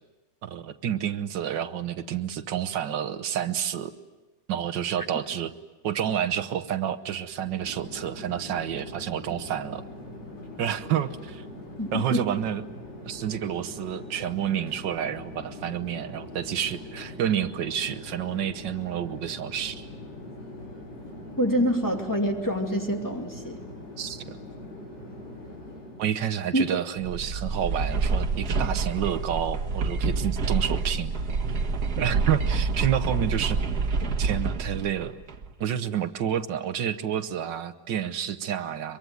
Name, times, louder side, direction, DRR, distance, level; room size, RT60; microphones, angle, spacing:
voice 1, 0.4-3.9 4.5-5.5 5.8-9.8 10.6-11.4 11.9-12.6 13.1-19.8 24.0-24.2 26.0-31.2 32.0-33.6 34.2-35.2 35.6-39.0, right 9 dB, 90° right, 11 dB, 1.7 m, -29 dB
Chatter / Fixed-wing aircraft airplane, 7.2-26.2, left 1 dB, 70° left, 7.3 m, -42 dB
voice 2, 11.8-12.2 21.4-23.6 26.5-26.6, equal, 10° left, 2 dB, 2.4 m, -26 dB
sound 1, 27.0-35.5, right 4 dB, 60° right, 2.0 m, -27 dB
24.5 x 23.5 x 9.3 m, 1.2 s
omnidirectional pair, 1.9 m